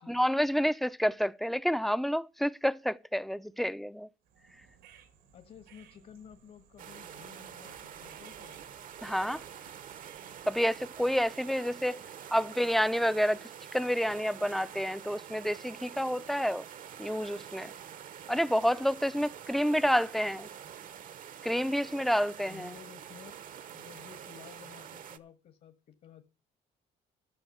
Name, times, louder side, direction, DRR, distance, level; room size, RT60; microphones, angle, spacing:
voice 1, 0.0-4.1 9.0-9.4 10.5-12.0 12.3-16.7 17.0-17.7 18.3-20.5 21.4-22.7, equal, ahead, 0.5 m, -29 dB
sound 1, 4.2-11.5, right 7 dB, 90° right, 2.5 m, -60 dB
voice 2, 5.3-8.6 22.4-23.4 23.7-26.3, left 8 dB, 55° left, 1.4 m, -53 dB
sound 2, 6.8-25.2, right 9 dB, 55° right, 0.9 m, -47 dB
12.5 x 6.2 x 7.2 m
cardioid pair, 110°, 17 cm